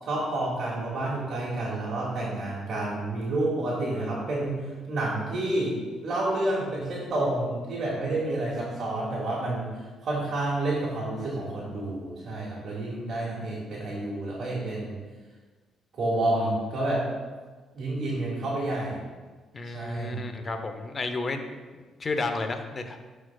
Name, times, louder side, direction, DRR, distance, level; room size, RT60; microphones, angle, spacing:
voice 1, 0.0-4.6 4.9-5.8 6.0-9.7 10.0-14.9 15.9-17.0 17.7-19.0 19.7-20.2, right 2 dB, 55° right, -7 dB, 1.7 m, -29 dB
voice 2, 19.5-21.5 22.0-23.0, left 3 dB, 35° left, 7 dB, 0.7 m, -31 dB
10.5 x 4.7 x 2.3 m, 1.4 s
cardioid pair, 90°, 0 cm